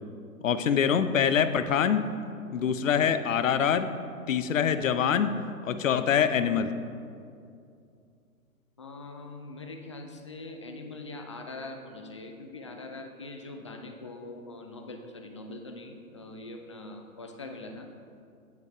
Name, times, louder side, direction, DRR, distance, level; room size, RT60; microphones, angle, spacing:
voice 1, 0.4-2.1 2.5-3.9 4.3-5.4 5.6-6.7, left 8 dB, 60° left, 11 dB, 0.7 m, -24 dB
voice 2, 8.8-17.9, left 2 dB, 20° left, 4 dB, 0.4 m, -42 dB
8.7 x 8.2 x 4.9 m, 2.4 s
figure-of-eight pair, 130°, 44 cm